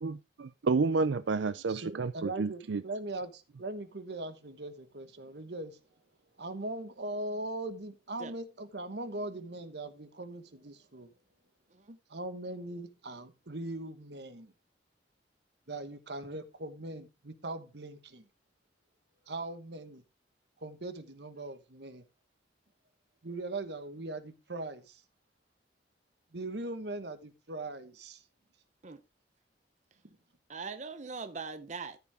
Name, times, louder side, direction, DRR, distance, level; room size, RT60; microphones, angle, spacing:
voice 1, 0.0-2.8, right 4 dB, 85° right, 0.5 m, -30 dB
voice 2, 1.7-5.8 6.4-11.1 12.1-14.5 15.7-18.2 19.3-20.0 20.6-22.0 23.2-25.0 26.3-28.2 30.0-30.2, right 2 dB, 65° right, 1.3 m, -40 dB
voice 3, 30.5-32.0, right 4 dB, 40° right, 0.7 m, -41 dB
14.0 x 6.0 x 3.5 m
head